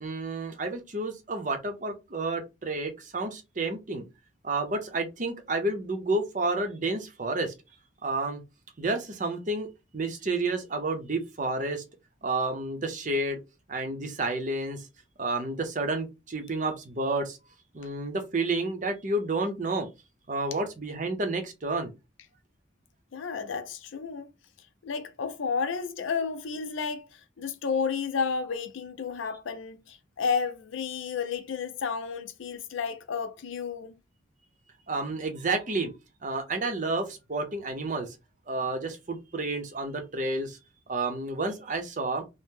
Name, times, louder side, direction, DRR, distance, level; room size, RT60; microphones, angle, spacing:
voice 1, 0.0-4.0 4.4-7.5 8.0-8.4 8.8-9.7 9.9-11.8 12.2-13.4 13.7-14.9 15.2-17.4 17.7-19.9 20.3-21.9 34.9-35.9 36.2-38.2 38.5-40.6 40.9-42.2, right 2 dB, 40° right, 0.6 m, -30 dB
voice 2, 23.1-24.3 24.8-33.9, left 5 dB, 75° left, 0.5 m, -32 dB
2.8 x 2.0 x 3.5 m
head